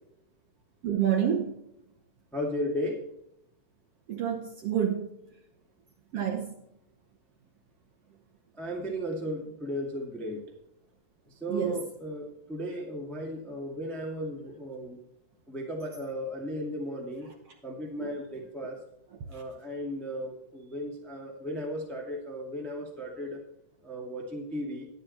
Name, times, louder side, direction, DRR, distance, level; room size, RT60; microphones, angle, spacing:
voice 1, 0.8-1.5 4.1-5.1 6.1-6.5 11.5-11.8 18.0-18.2, right 9 dB, 75° right, 2 dB, 1.4 m, -28 dB
voice 2, 2.3-3.0 8.6-10.4 11.4-15.0 15.5-17.3 17.6-18.8 19.3-23.4 23.8-24.9, equal, ahead, -1 dB, 0.9 m, -35 dB
10.5 x 10.5 x 4.2 m, 0.80 s
omnidirectional pair, 4.2 m